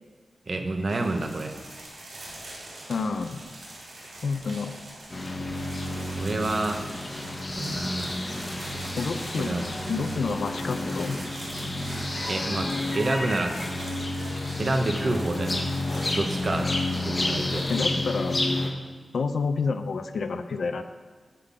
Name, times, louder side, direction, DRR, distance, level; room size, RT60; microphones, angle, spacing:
voice 1, 0.5-1.6 6.1-6.8 7.6-8.1 9.4-9.6 12.2-12.7 12.9-13.5 14.6-15.7 16.1-16.7 17.0-17.7, right 2 dB, 45° right, 4 dB, 0.8 m, -28 dB
sound 1, 0.9-17.8, right 1 dB, 90° right, 2.9 m, -44 dB
voice 2, 2.9-3.4 4.2-4.7 9.0-9.6 9.9-11.2 17.7-18.4 19.1-20.8, left 4 dB, 75° left, 9 dB, 0.5 m, -29 dB
sound 2, 5.1-18.7, left 2 dB, 30° left, 1.0 m, -30 dB
10.0 x 3.8 x 7.1 m, 1.4 s
wide cardioid pair, 145°, 0 cm